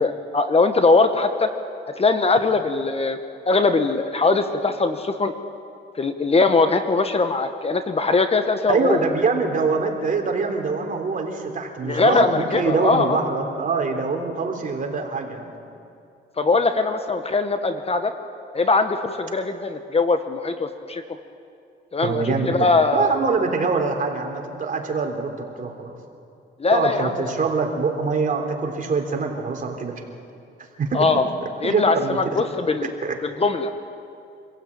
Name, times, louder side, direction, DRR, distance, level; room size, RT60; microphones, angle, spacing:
voice 1, 0.0-1.5 2.0-3.2 3.5-5.3 6.0-9.0 11.8-13.2 16.4-18.1 18.5-21.0 21.9-23.1 26.6-27.1 30.9-31.3 31.6-32.9 33.2-33.7, left 3 dB, 30° left, 8 dB, 1.3 m, -21 dB
voice 2, 8.7-15.5 22.0-25.3 25.6-25.9 26.7-30.0 30.8-31.1 31.6-32.4 33.0-33.2, right 4 dB, 40° right, 2 dB, 3.6 m, -24 dB
26.0 x 15.5 x 8.8 m, 2.5 s
cardioid pair, 90°, 20 cm